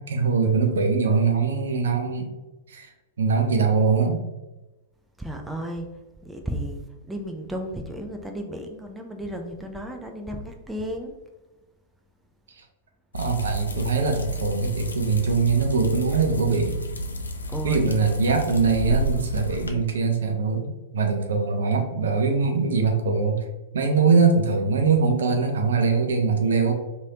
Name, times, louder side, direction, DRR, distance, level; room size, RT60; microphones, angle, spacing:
voice 1, 0.1-2.3 2.7-2.9 3.2-4.2 12.6-12.7 13.1-16.8 17.6-23.4 23.7-26.7, right 4 dB, 70° right, 3 dB, 0.5 m, -22 dB
voice 2, 5.2-5.9 6.2-11.1 17.5-18.0, equal, 5° right, 2 dB, 0.4 m, -34 dB
sound 1, 13.1-19.7, right 1 dB, 85° left, 0.4 m, -30 dB
3.2 x 2.7 x 2.7 m, 1.1 s
figure-of-eight pair, 100°, 0 cm